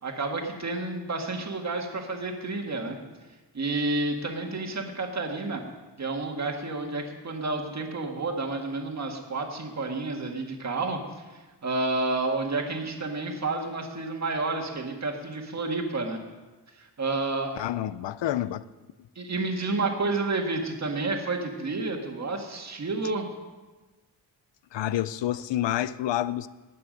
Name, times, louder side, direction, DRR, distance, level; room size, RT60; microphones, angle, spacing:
voice 1, 0.0-3.0 3.5-5.6 6.0-11.0 11.3-16.2 16.8-17.6 19.2-23.3, right 3 dB, 40° right, 1.8 m, -30 dB
voice 2, 17.6-18.6 24.7-26.5, left 13 dB, 85° left, 0.6 m, -28 dB
19.5 x 8.6 x 5.2 m
wide cardioid pair, 155°, 43 cm